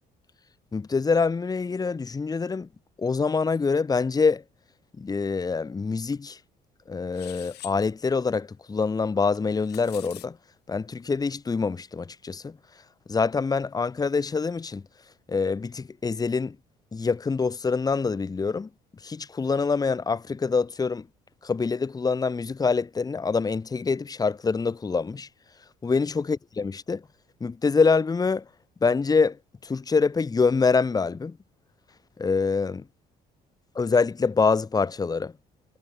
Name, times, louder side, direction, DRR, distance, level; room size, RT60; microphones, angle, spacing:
voice 1, 0.7-2.7 3.0-4.4 5.0-6.4 6.9-10.4 10.7-12.6 13.1-14.8 15.3-16.5 16.9-18.7 19.0-21.0 21.4-25.3 25.8-27.0 27.4-28.4 28.8-29.4 29.6-31.4 32.2-32.8 33.7-35.3, left 4 dB, 20° left, 1.5 m, -25 dB
sound 1, 7.1-7.8 9.3-10.3, left 16 dB, 75° left, 3.0 m, -44 dB
cardioid pair, 110°, 17 cm